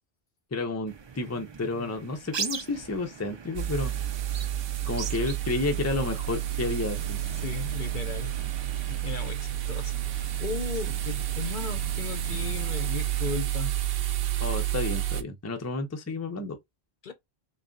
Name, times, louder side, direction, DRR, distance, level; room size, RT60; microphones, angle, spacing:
voice 1, 0.5-3.9 4.9-7.2 14.4-16.6, left 3 dB, 20° left, 0.6 m, -31 dB
sound 1, 0.9-13.4, right 6 dB, 45° right, 0.3 m, -42 dB
sound 2, 3.5-15.2, right 13 dB, 65° right, 0.8 m, -30 dB
voice 2, 7.3-8.3 8.9-13.8 17.0-17.1, left 6 dB, 55° left, 0.8 m, -36 dB
3.5 x 2.3 x 3.8 m
omnidirectional pair, 1.1 m